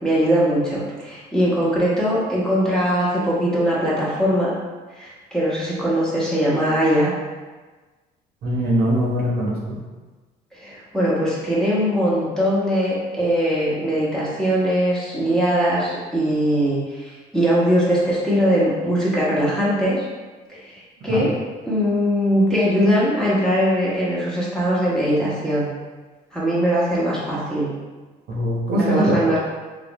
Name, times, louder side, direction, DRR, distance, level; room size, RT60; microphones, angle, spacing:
voice 1, 0.0-4.5 4.9-7.1 10.5-20.0 20.5-21.3 21.7-25.7 26.3-27.7 28.7-29.4, equal, 5° left, -8 dB, 1.2 m, -21 dB
voice 2, 8.4-9.8 21.1-21.3 28.3-29.4, equal, 65° right, -4 dB, 1.1 m, -21 dB
4.1 x 2.5 x 3.1 m, 1.3 s
cardioid pair, 110°, 17 cm